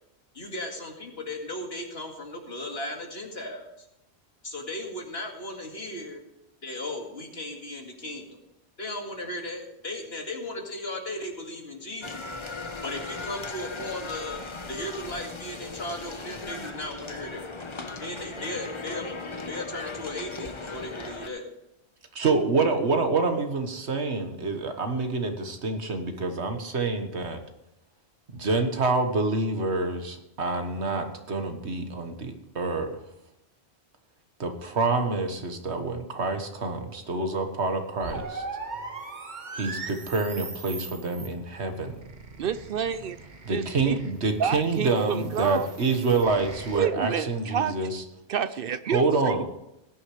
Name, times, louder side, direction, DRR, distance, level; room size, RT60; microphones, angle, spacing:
voice 1, 0.3-3.7 4.4-6.2 6.6-8.4 8.8-12.3 12.8-14.4 14.7-19.1 19.5-21.5, left 1 dB, 65° left, 2 dB, 2.3 m, -36 dB
sound 1, 12.0-21.3, left 3 dB, 30° left, 0.9 m, -38 dB
voice 2, 22.1-27.4 28.3-33.0 34.4-38.4 39.5-41.9 43.5-48.0 48.9-49.4, right 3 dB, 90° right, 6 dB, 1.7 m, -27 dB
sound 2, 38.0-46.8, right 4 dB, 45° right, 1.3 m, -40 dB
voice 3, 42.4-43.2 43.5-44.0 44.4-45.7 46.7-47.7 48.3-49.3, right 8 dB, 65° right, 13 dB, 0.7 m, -29 dB
18.0 x 10.0 x 3.3 m, 0.88 s
omnidirectional pair, 1.1 m